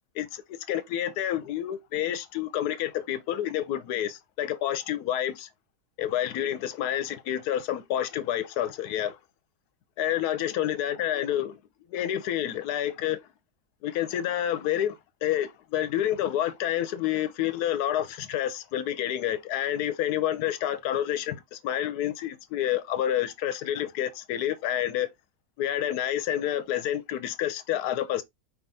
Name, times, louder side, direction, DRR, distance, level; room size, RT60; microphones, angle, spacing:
voice 1, 0.7-5.5 6.0-9.2 10.0-11.6 11.9-13.3 13.8-25.1 25.6-28.2, left 11 dB, 80° left, 1.1 m, -29 dB
4.5 x 3.6 x 2.6 m
omnidirectional pair, 1.6 m